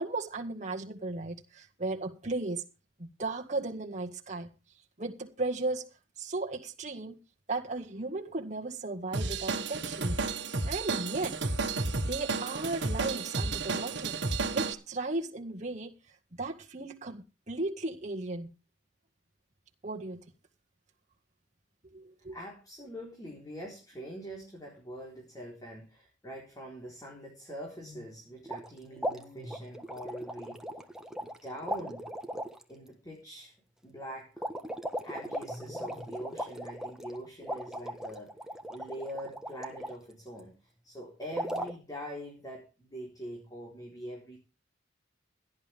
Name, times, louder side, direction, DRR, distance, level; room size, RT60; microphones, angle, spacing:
voice 1, 0.0-2.6 3.0-4.5 5.0-7.2 7.5-10.2 10.6-11.4 12.0-14.2 14.5-16.0 16.4-18.5 19.8-20.2 21.9-22.3, right 2 dB, 40° right, 1.8 m, -35 dB
Drum kit / Drum, 9.1-14.7, right 3 dB, 60° right, 1.8 m, -32 dB
voice 2, 22.3-30.6 31.2-32.1 32.7-33.6 33.8-34.5 35.0-44.4, equal, 20° left, 4.0 m, -44 dB
sound 1, 28.4-28.7 29.0-31.4 31.6-32.6 34.4-39.9 41.3-41.7, equal, 5° right, 1.4 m, -37 dB
17.5 x 11.0 x 3.5 m
head